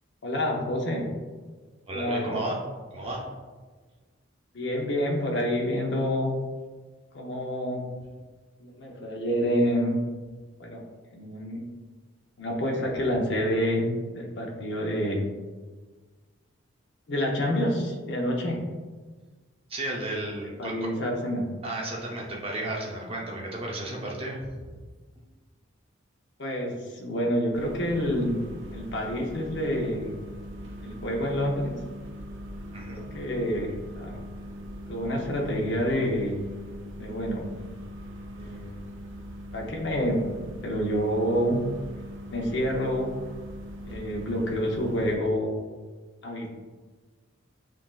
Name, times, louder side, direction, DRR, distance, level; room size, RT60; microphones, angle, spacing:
voice 1, 0.2-1.1 1.9-2.5 4.5-6.4 7.1-7.9 8.6-10.0 10.6-10.8 11.1-11.6 12.4-15.2 17.1-18.6 20.6-21.5 26.4-28.4 28.7-30.1 30.8-31.8 32.9-34.2 34.9-36.4 37.0-37.5 38.3-38.8 39.5-40.2 40.6-41.6 42.3-43.1 43.8-45.5 46.2-46.5, equal, 60° left, 0 dB, 0.7 m, -28 dB
voice 2, 1.9-2.6 2.9-3.2 19.7-20.7 21.6-24.7 32.7-33.0, right 1 dB, 30° right, -2 dB, 0.7 m, -33 dB
sound 1, 27.5-45.2, equal, 70° right, 0.5 m, -41 dB
5.8 x 2.5 x 2.4 m, 1.4 s
head